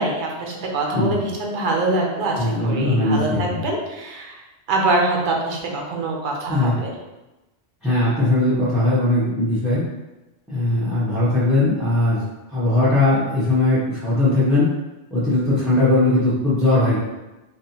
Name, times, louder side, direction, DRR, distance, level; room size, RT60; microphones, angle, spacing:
voice 1, 0.0-4.4 4.7-6.9, right 2 dB, 55° right, 0 dB, 0.7 m, -24 dB
voice 2, 2.4-3.6 6.5-6.8 7.8-9.8 10.5-12.2 12.5-14.7 15.1-17.0, left 2 dB, ahead, -13 dB, 0.6 m, -19 dB
3.5 x 2.4 x 2.8 m, 1.1 s
omnidirectional pair, 1.2 m